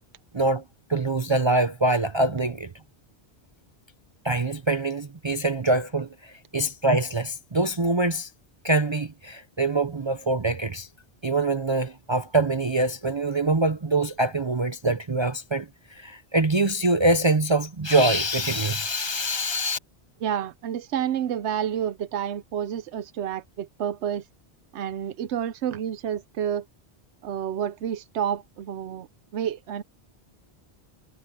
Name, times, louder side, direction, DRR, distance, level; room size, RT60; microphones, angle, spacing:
voice 1, 0.9-2.7 4.2-8.3 8.6-10.9 11.2-19.8, right 2 dB, 30° right, 0.6 m, -24 dB
voice 2, 20.2-24.2 24.7-26.6 27.2-29.1 29.3-29.8, right 9 dB, 90° right, 0.9 m, -29 dB
omnidirectional pair, 1.1 m